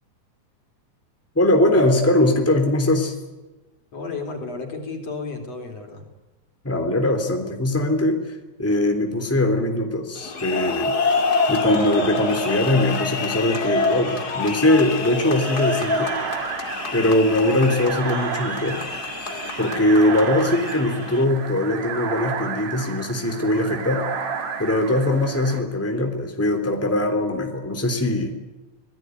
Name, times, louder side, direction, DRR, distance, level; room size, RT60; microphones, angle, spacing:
voice 1, 1.3-3.1 6.6-8.3 8.6-10.9 11.5-16.1 16.9-18.8 19.6-24.0 24.6-28.3, left 1 dB, 5° left, 4 dB, 3.1 m, -21 dB
voice 2, 3.9-6.1, left 4 dB, 60° left, 4 dB, 4.9 m, -32 dB
sound 1, 10.2-21.2, left 3 dB, 35° left, 2.8 m, -27 dB
sound 2, 15.3-25.6, right 6 dB, 70° right, 3.7 m, -32 dB
25.5 x 18.5 x 9.5 m, 1.1 s
omnidirectional pair, 3.3 m